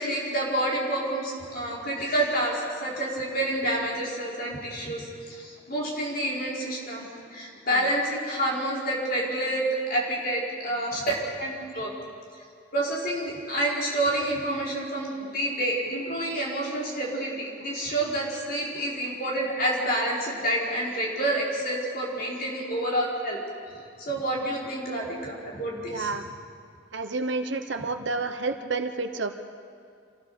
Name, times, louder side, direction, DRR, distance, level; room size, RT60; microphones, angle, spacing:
voice 1, 0.0-11.9 12.7-23.4 23.7-26.1, right 1 dB, 50° left, -4 dB, 4.8 m, -28 dB
voice 2, 25.9-26.3 26.9-29.4, right 3 dB, 70° right, 8 dB, 1.0 m, -30 dB
27.0 x 15.5 x 6.9 m, 2.3 s
head